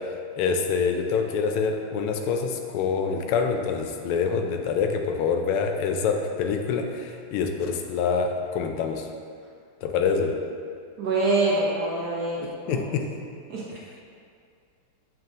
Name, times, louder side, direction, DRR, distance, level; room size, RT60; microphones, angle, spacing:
voice 1, 0.4-9.0 9.8-10.3 12.7-13.0, left 5 dB, 85° left, 4 dB, 1.5 m, -26 dB
voice 2, 11.0-12.8 13.5-13.6, right 2 dB, 60° right, -5 dB, 1.2 m, -25 dB
7.3 x 6.0 x 2.5 m, 2.2 s
omnidirectional pair, 2.4 m